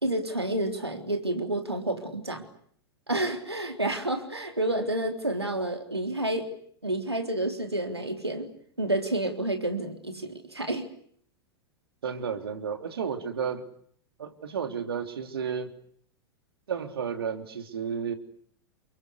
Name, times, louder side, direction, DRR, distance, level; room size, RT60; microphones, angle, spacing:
voice 1, 0.0-2.4 3.1-6.5 6.8-8.5 8.8-10.9, right 1 dB, 90° right, 5 dB, 3.7 m, -29 dB
voice 2, 12.0-13.7 14.2-15.7 16.7-18.1, right 7 dB, 70° right, 7 dB, 3.4 m, -32 dB
29.0 x 23.5 x 8.3 m, 0.63 s
figure-of-eight pair, 95°, 13 cm